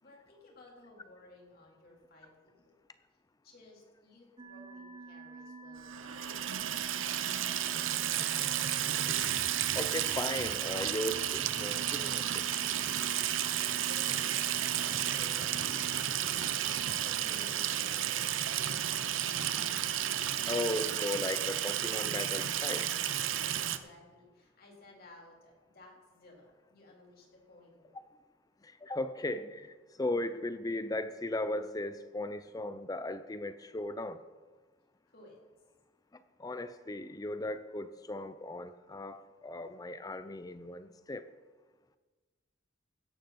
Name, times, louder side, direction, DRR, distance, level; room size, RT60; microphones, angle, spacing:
voice 1, 0.0-2.8 3.4-7.4 13.3-19.5 23.3-28.0 35.1-35.4, left 2 dB, 50° left, -1 dB, 3.7 m, -57 dB
sound 1, 4.4-16.0, right 3 dB, 30° right, 0.8 m, -48 dB
Water tap faucet / Sink (filling or washing), 5.9-23.8, right 11 dB, 80° right, 0.7 m, -32 dB
voice 2, 8.2-8.5 9.1-12.4 20.5-22.9 28.6-34.2 36.1-41.3, left 1 dB, 20° left, 12 dB, 0.5 m, -37 dB
16.0 x 12.0 x 4.2 m, 1.3 s
head